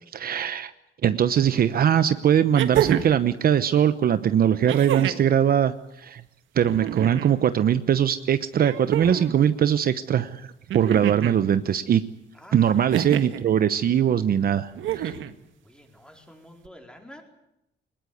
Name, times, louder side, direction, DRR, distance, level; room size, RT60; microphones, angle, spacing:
voice 1, 0.1-0.7 1.0-6.2 6.5-12.0 12.5-15.1, right 9 dB, 50° right, 12 dB, 1.0 m, -21 dB
Evil chuckle, 1.5-1.6 2.5-3.3 4.7-5.3 6.6-7.3 8.6-9.4 10.7-11.4 12.9-13.4 14.8-15.3 16.7-16.8, right 10 dB, 85° right, 1.8 m, -28 dB
voice 2, 15.6-17.2, equal, 5° left, 3 dB, 4.5 m, -48 dB
22.5 x 20.5 x 9.5 m, 0.84 s
cardioid pair, 150°, 19 cm